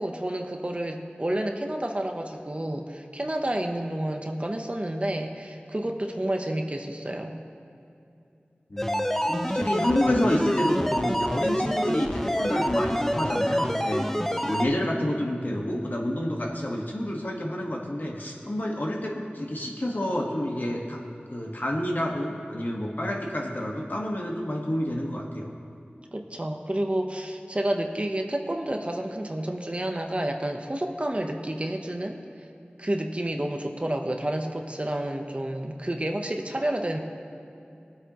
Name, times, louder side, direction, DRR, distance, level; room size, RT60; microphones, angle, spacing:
voice 1, 0.0-7.4 26.1-32.2 32.8-37.0, right 1 dB, 35° right, 3 dB, 0.9 m, -30 dB
voice 2, 8.7-14.1 14.4-21.0 21.3-25.5, left 1 dB, 55° left, -1 dB, 1.6 m, -29 dB
sound 1, 8.8-14.7, equal, 10° left, 0.6 m, -27 dB
20.0 x 8.2 x 3.1 m, 2.7 s
wide cardioid pair, 50°, 4 cm